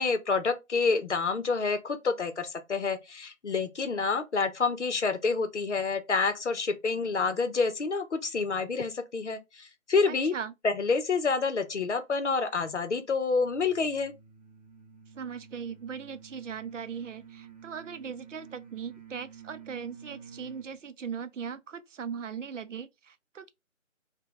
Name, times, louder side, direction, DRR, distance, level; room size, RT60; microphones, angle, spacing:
voice 1, 0.0-10.3 10.6-14.1, left 4 dB, 60° left, 0.7 m, -28 dB
voice 2, 10.1-10.5 15.1-23.5, right 7 dB, 70° right, 0.5 m, -39 dB
sound 1, 13.3-20.7, right 7 dB, 35° right, 0.7 m, -51 dB
3.0 x 2.2 x 3.6 m
figure-of-eight pair, 165°, 39 cm